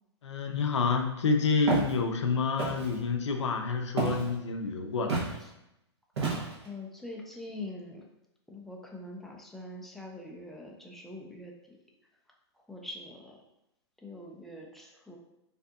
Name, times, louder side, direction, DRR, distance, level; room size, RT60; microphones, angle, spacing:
voice 1, 0.2-5.2, left 4 dB, 90° left, 4 dB, 0.4 m, -28 dB
Walk footsteps, 1.7-1.9 2.6-3.0 4.0-4.3 5.1-5.3 6.2-6.7, right 3 dB, 70° right, 0.9 m, -29 dB
voice 2, 6.6-8.1 8.5-11.8 12.7-13.4 14.0-15.2, left 2 dB, ahead, -1 dB, 0.3 m, -43 dB
2.7 x 2.4 x 2.3 m, 0.88 s
hypercardioid pair, 120°, 15 cm